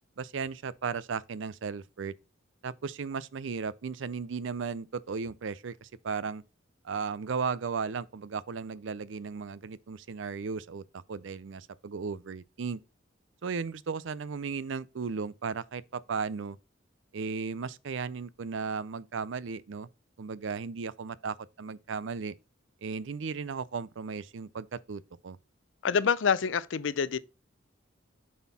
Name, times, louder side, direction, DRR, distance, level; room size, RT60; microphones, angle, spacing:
voice 1, 0.2-2.1 2.6-6.4 6.8-12.8 13.4-16.6 17.1-19.9 20.2-22.3 22.8-25.4, right 5 dB, 70° right, 0.5 m, -35 dB
voice 2, 25.8-27.2, left 6 dB, 70° left, 0.5 m, -26 dB
7.0 x 4.3 x 4.1 m
head